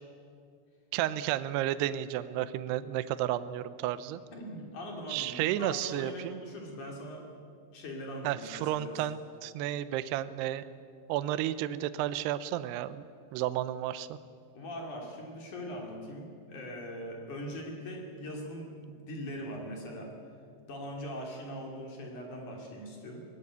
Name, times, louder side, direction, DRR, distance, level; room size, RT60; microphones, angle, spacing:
voice 1, 0.9-4.2 5.1-6.4 8.2-10.6 11.1-13.0 13.3-14.2, right 13 dB, 80° right, 13 dB, 2.4 m, -32 dB
voice 2, 4.3-7.3 7.7-9.0 14.5-20.1 20.7-23.3, equal, 45° left, 1 dB, 3.8 m, -41 dB
19.0 x 16.0 x 9.5 m, 2.3 s
omnidirectional pair, 5.4 m